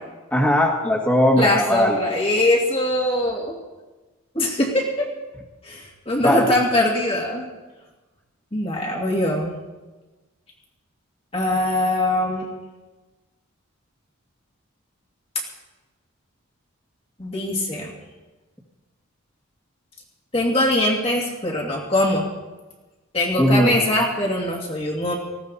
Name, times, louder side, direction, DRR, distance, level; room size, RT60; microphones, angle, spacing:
voice 1, 0.3-2.0 6.2-6.5 23.4-23.7, equal, 10° left, -1 dB, 1.7 m, -18 dB
voice 2, 1.4-3.5 4.3-5.1 5.6-7.5 8.5-9.5 11.3-12.5 17.2-17.9 20.3-22.3 23.1-25.2, left 1 dB, 25° left, -2 dB, 2.4 m, -22 dB
19.0 x 16.0 x 4.1 m, 1.2 s
head